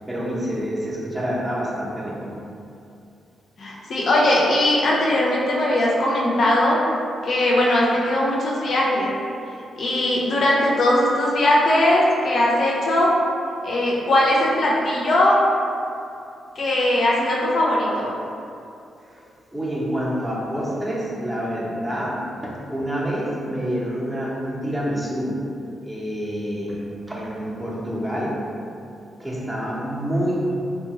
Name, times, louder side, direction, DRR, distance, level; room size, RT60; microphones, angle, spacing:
voice 1, 0.1-2.3 19.5-25.5 25.8-28.5 29.2-30.6, equal, 5° right, -6 dB, 0.8 m, -27 dB
voice 2, 3.6-6.8 7.2-9.1 9.8-13.1 13.6-15.4 16.6-18.1, left 1 dB, 60° left, -4 dB, 0.5 m, -19 dB
2.6 x 2.3 x 2.8 m, 2.5 s
hypercardioid pair, 40°, 0 cm